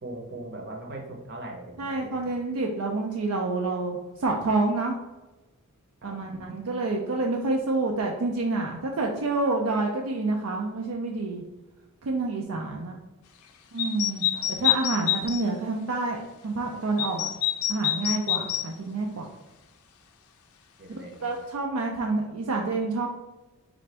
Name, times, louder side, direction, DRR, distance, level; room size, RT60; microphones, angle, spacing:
voice 1, 0.0-2.3 6.0-6.2 12.5-12.8 14.3-14.5 20.8-21.3, right 2 dB, 50° right, 1 dB, 0.8 m, -40 dB
voice 2, 1.8-5.0 6.0-11.4 12.0-13.0 13.7-14.2 14.6-17.3 17.7-19.3 20.9-23.1, right 3 dB, 70° right, 1 dB, 0.5 m, -28 dB
sound 1, 13.8-15.5 17.0-18.7, left 12 dB, 80° left, 0.4 m, -26 dB
3.9 x 3.4 x 3.3 m, 1.1 s
head